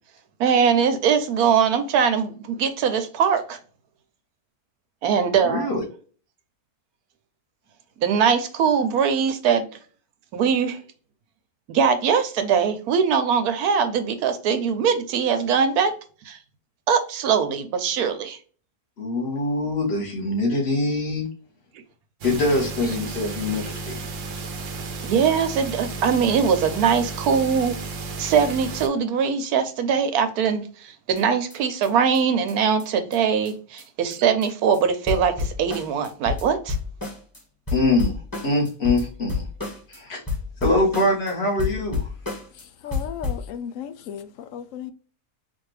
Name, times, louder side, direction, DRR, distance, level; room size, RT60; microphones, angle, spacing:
voice 1, 0.4-3.6 5.0-5.7 8.0-9.7 10.3-10.8 11.7-15.9 16.3-16.4 16.9-18.4 25.0-27.7 28.2-36.8, right 6 dB, 85° right, 1.2 m, -21 dB
voice 2, 5.4-5.8 19.0-21.3 22.2-24.0 37.7-38.1 38.4-39.4 39.9-40.2 40.6-42.1, left 2 dB, 45° left, 1.7 m, -23 dB
sound 1, 22.2-28.9, right 3 dB, 60° right, 1.0 m, -33 dB
sound 2, 31.2-31.3 31.5-31.6 31.8-31.9 32.1-32.2 32.5-32.6 32.8-32.9 33.1-33.2 33.4-33.5 33.8-33.9 34.1-34.5 34.7-34.8 35.1-37.4 37.7-40.0 40.3-41.3 41.6-42.6 42.9-43.5, left 4 dB, 15° left, 1.4 m, -30 dB
voice 3, 42.5-44.9, left 9 dB, 70° left, 0.9 m, -35 dB
4.4 x 2.6 x 3.2 m
omnidirectional pair, 1.6 m